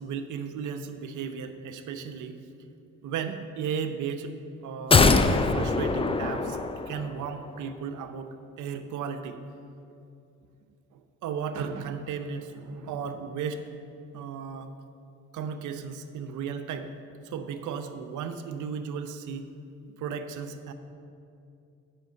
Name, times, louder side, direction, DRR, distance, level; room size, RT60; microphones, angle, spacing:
voice 1, 0.0-2.4 3.0-4.3 4.6-5.2 5.5-6.6 6.9-9.4 10.9-13.6 14.1-14.7 15.3-16.9 17.2-19.5 20.0-20.7, right 6 dB, 80° right, 8 dB, 0.7 m, -35 dB
sound 1, 4.9-7.3 7.6-7.7, left 3 dB, 20° left, 0.5 m, -23 dB
8.0 x 5.8 x 7.8 m, 2.6 s
cardioid pair, 90°, 30 cm